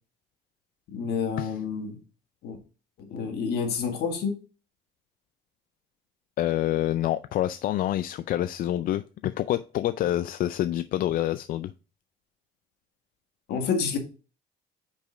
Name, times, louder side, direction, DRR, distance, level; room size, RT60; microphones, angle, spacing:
voice 1, 0.9-2.0 2.4-2.6 3.0-4.4 13.5-14.0, left 6 dB, 75° left, 4 dB, 1.8 m, -29 dB
voice 2, 6.4-11.7, left 13 dB, 60° left, 12 dB, 0.4 m, -27 dB
5.3 x 4.8 x 5.0 m, 0.34 s
cardioid pair, 110°, 17 cm